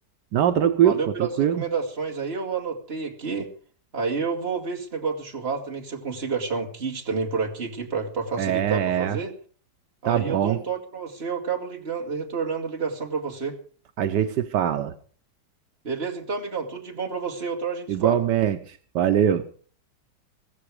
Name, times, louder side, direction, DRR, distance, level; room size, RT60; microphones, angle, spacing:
voice 1, 0.3-1.6 8.4-9.2 10.1-10.6 14.0-14.9 17.9-19.4, right 10 dB, 80° right, 9 dB, 1.5 m, -22 dB
voice 2, 0.8-3.5 3.9-9.3 10.0-13.6 15.8-18.2, right 5 dB, 35° right, 1 dB, 2.6 m, -29 dB
15.5 x 15.0 x 4.9 m, 0.42 s
omnidirectional pair, 1.8 m